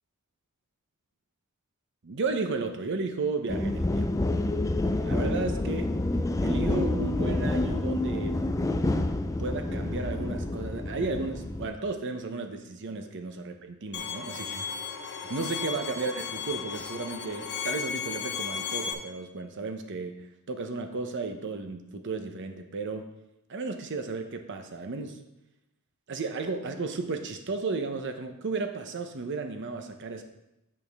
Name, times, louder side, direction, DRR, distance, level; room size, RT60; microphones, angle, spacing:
voice 1, 2.0-4.1 5.0-5.9 6.4-8.4 9.4-14.7 15.3-23.1 23.5-25.2 26.1-30.2, right 3 dB, 60° right, 6 dB, 0.7 m, -34 dB
sound 1, 3.5-11.7, left 2 dB, 15° left, 0.3 m, -28 dB
Bowed string instrument, 13.9-18.9, left 6 dB, 55° left, 0.7 m, -35 dB
8.7 x 5.4 x 3.5 m, 0.89 s
head